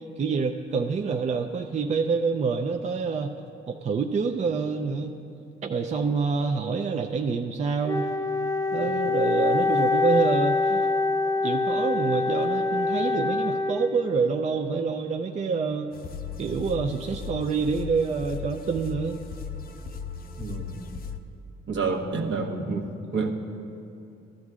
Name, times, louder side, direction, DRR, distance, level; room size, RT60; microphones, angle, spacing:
voice 1, 0.0-3.3 3.7-5.1 5.6-8.0 8.7-10.9 11.4-15.9 16.4-19.2, right 5 dB, 35° right, 4 dB, 0.5 m, -27 dB
Wind instrument woodwind instrument, 7.8-14.2, left 3 dB, 15° left, 0.7 m, -25 dB
sound 1, 15.9-21.2, left 6 dB, 50° left, 0.6 m, -37 dB
voice 2, 20.4-20.8 21.7-22.9 23.1-23.3, right 4 dB, 65° right, 2 dB, 1.1 m, -28 dB
15.0 x 12.5 x 2.4 m, 2.6 s
cardioid pair, 90°, 20 cm